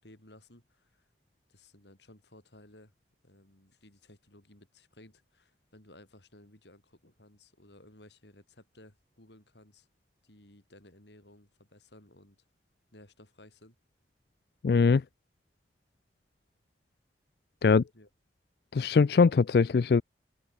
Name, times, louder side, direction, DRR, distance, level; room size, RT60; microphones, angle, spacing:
voice 1, 0.0-1.1 1.5-2.9 3.2-9.9 10.2-12.4 12.9-13.8 17.9-18.1, left 1 dB, 80° left, 6.5 m, -57 dB
voice 2, 14.6-15.0 17.6-17.8 18.7-20.0, left 4 dB, 60° left, 0.4 m, -22 dB
head